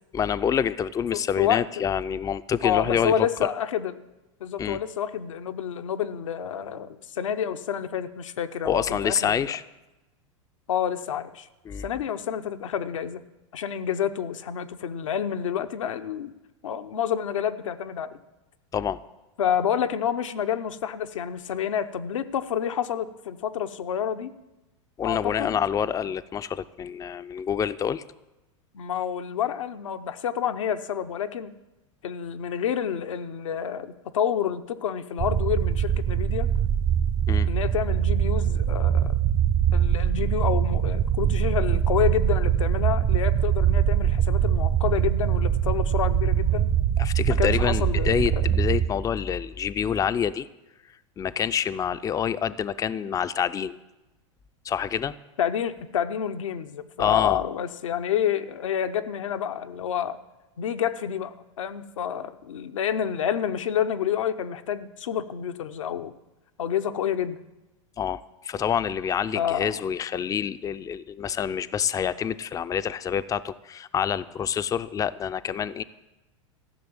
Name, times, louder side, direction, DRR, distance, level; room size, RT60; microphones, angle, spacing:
voice 1, 0.1-3.3 4.6-4.8 8.6-9.6 11.7-11.9 18.7-19.0 25.0-28.0 37.3-37.5 47.0-50.5 51.2-53.8 54.6-55.1 57.0-57.4 68.0-75.8, left 8 dB, 20° left, 14 dB, 0.5 m, -27 dB
voice 2, 1.1-1.6 2.6-4.0 4.4-9.5 10.7-11.5 11.8-13.2 13.5-16.3 16.6-18.2 19.4-24.3 25.0-25.6 28.7-31.5 32.0-36.5 37.5-39.2 39.7-46.7 47.4-48.5 55.4-60.2 60.6-66.1 66.6-67.4 69.3-69.8, left 9 dB, 75° left, 9 dB, 0.9 m, -28 dB
sound 1, 35.2-48.9, right 9 dB, 40° right, 1.0 m, -23 dB
14.5 x 6.7 x 8.8 m, 1.0 s
hypercardioid pair, 95°, 16 cm